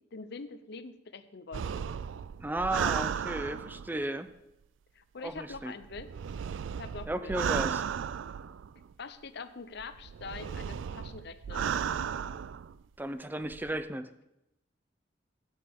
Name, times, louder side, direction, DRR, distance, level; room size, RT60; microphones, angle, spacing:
voice 1, 0.1-1.9 4.9-6.1 6.8-7.3 9.0-11.7, left 4 dB, 65° left, 11 dB, 0.7 m, -44 dB
sound 1, 1.5-4.0 5.3-8.9 9.8-12.7 13.4-13.8, right 7 dB, 90° right, 0.4 m, -35 dB
voice 2, 2.4-4.3 5.2-5.7 7.1-7.8 13.0-14.1, right 1 dB, 10° right, 11 dB, 0.5 m, -34 dB
14.0 x 9.0 x 3.6 m, 0.88 s
head